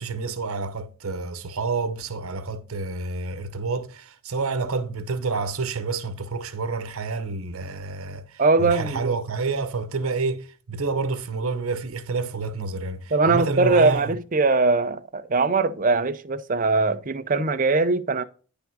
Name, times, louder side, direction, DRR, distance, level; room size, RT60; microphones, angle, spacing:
voice 1, 0.0-14.1, right 4 dB, 80° right, 0.8 m, -29 dB
voice 2, 8.4-9.1 13.1-18.2, right 3 dB, 40° right, 0.5 m, -21 dB
10.0 x 3.6 x 6.1 m
head